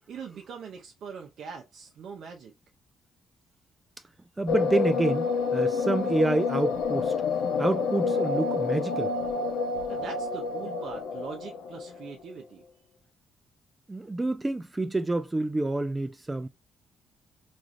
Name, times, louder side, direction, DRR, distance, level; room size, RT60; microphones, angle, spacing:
voice 1, 0.1-2.5 9.9-12.6, right 6 dB, 65° right, 0.5 m, -42 dB
voice 2, 4.4-7.1 7.6-9.1 13.9-16.5, right 2 dB, 15° right, 0.3 m, -28 dB
sound 1, 4.5-12.1, left 4 dB, 85° left, 0.5 m, -28 dB
3.1 x 2.4 x 2.5 m
cardioid pair, 90°, 0 cm